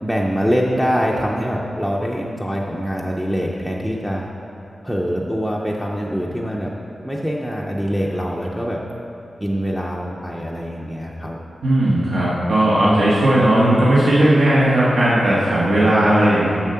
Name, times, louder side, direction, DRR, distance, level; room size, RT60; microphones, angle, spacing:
voice 1, 0.0-4.3 4.8-6.7 7.0-8.8 9.4-11.4, equal, 5° right, -3 dB, 0.5 m, -24 dB
voice 2, 11.6-16.5, right 1 dB, 75° right, -8 dB, 1.3 m, -16 dB
7.1 x 6.5 x 5.6 m, 2.9 s
wide cardioid pair, 170°, 0 cm